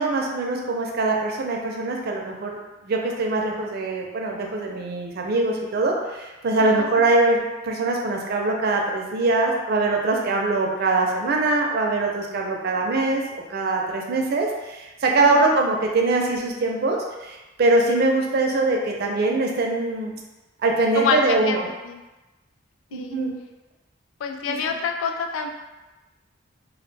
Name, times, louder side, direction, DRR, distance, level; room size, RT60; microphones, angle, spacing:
voice 1, 0.0-2.6 2.8-13.2 13.5-20.2 20.6-21.7 22.9-23.4 24.5-24.6, right 2 dB, 55° right, 0 dB, 0.4 m, -23 dB
voice 2, 6.6-6.9 15.2-15.4 20.9-22.0 22.9-23.2 24.2-25.5, left 5 dB, 80° left, 4 dB, 0.3 m, -27 dB
2.4 x 2.1 x 3.2 m, 1.1 s
head